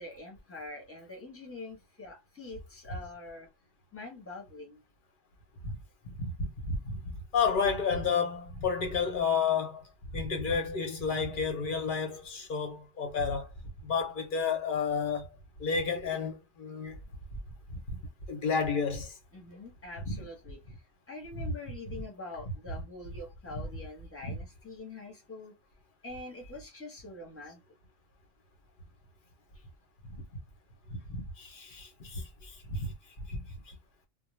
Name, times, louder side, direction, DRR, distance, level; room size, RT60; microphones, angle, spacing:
voice 1, 0.0-3.5 3.9-4.8 19.3-20.8 21.1-25.5 26.0-27.6 29.5-29.6, left 2 dB, 10° left, 0.7 m, -45 dB
voice 2, 6.2-9.8 10.1-13.5 13.8-15.3 15.6-17.0 17.7-18.0 18.3-19.1 20.0-20.2 20.7-20.8 21.3-21.5 22.7-22.8 23.5-23.7 24.2-24.4 31.1-32.9 33.3-33.4 33.7-33.8, left 5 dB, 50° left, 0.7 m, -31 dB
2.3 x 2.0 x 3.0 m
omnidirectional pair, 1.4 m